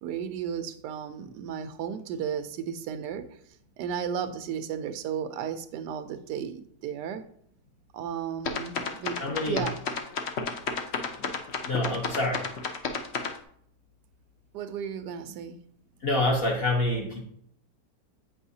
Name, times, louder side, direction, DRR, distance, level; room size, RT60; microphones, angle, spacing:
voice 1, 0.0-3.3 3.8-7.2 7.9-9.2 9.4-9.8 14.5-15.6, right 8 dB, 90° right, 10 dB, 1.2 m, -34 dB
sound 1, 8.5-13.4, left 5 dB, 60° left, 0.7 m, -31 dB
voice 2, 9.2-9.7 11.2-11.3 11.6-12.5 16.0-17.2, left 2 dB, 40° left, -1 dB, 1.2 m, -27 dB
7.9 x 5.5 x 2.7 m, 0.65 s
omnidirectional pair, 1.7 m